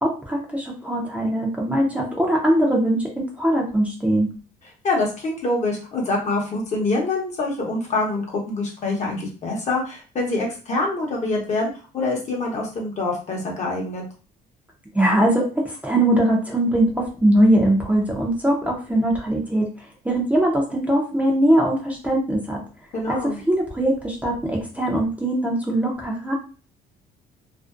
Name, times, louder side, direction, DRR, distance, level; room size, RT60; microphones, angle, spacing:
voice 1, 0.0-4.3 14.9-19.7 20.0-22.6 23.1-26.3, right 1 dB, 10° right, -1 dB, 0.5 m, -21 dB
voice 2, 4.8-14.0 22.9-23.4, left 2 dB, 45° left, 0 dB, 0.8 m, -25 dB
2.5 x 2.0 x 2.4 m, 0.35 s
cardioid pair, 110°, 17 cm